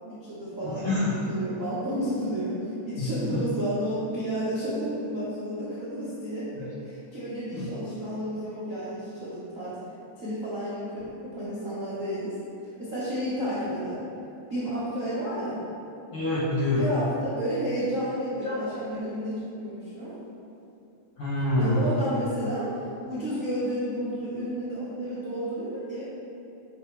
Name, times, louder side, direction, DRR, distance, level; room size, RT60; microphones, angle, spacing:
voice 1, 0.1-9.8 10.2-12.3 12.8-14.0 14.5-15.6 16.7-20.1 21.6-26.0, equal, 65° right, -11 dB, 0.7 m, -31 dB
voice 2, 0.6-1.1 3.0-3.4 7.5-7.6 16.1-16.8 18.4-18.6 21.2-21.9, left 1 dB, 50° left, -11 dB, 1.7 m, -26 dB
9.6 x 7.5 x 3.4 m, 2.6 s
omnidirectional pair, 4.7 m